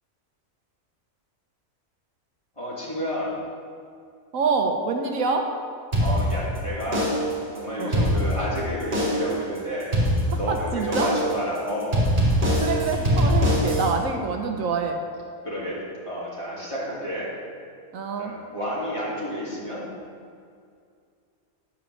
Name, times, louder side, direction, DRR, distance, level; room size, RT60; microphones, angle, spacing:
voice 1, 2.6-3.3 6.0-7.1 7.5-9.9 10.3-12.0 15.4-15.8 16.0-17.3 18.2-19.8, equal, 20° left, -8 dB, 2.9 m, -30 dB
voice 2, 4.3-5.5 7.8-8.1 10.5-11.1 12.6-15.0 17.9-18.3, right 4 dB, 75° right, 4 dB, 1.2 m, -26 dB
sound 1, 5.9-6.6 6.9-7.4 7.8-8.6 8.9-9.4 9.9-10.6 10.9-11.4 11.9-13.9, equal, 40° right, 2.4 m, -22 dB
10.0 x 5.1 x 7.1 m, 2.3 s
omnidirectional pair, 1.4 m